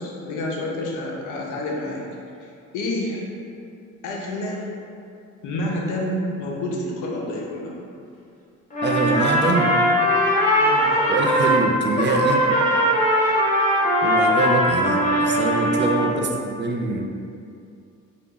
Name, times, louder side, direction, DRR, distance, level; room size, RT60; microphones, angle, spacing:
voice 1, 0.0-2.0 2.4-3.2 4.0-4.7 5.4-7.8 10.5-11.0 16.1-16.3, left 1 dB, 85° left, -2 dB, 0.7 m, -29 dB
Trumpet, 8.7-11.7 12.0-16.1, equal, 25° left, 0.9 m, -20 dB
voice 2, 8.8-9.8 11.1-12.5 14.0-17.1, right 3 dB, 40° right, 2 dB, 0.4 m, -24 dB
2.9 x 2.5 x 3.6 m, 2.5 s
cardioid pair, 90°, 30 cm